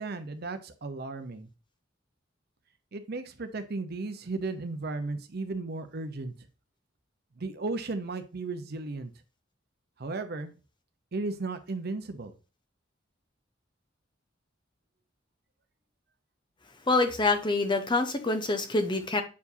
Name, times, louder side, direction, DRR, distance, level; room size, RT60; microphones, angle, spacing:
voice 1, 0.0-1.5 2.9-6.3 7.4-9.1 10.0-10.5 11.1-12.3, right 3 dB, 55° right, 9 dB, 0.7 m, -35 dB
voice 2, 16.9-19.2, left 3 dB, 25° left, 7 dB, 0.8 m, -26 dB
8.3 x 4.7 x 2.7 m, 0.33 s
head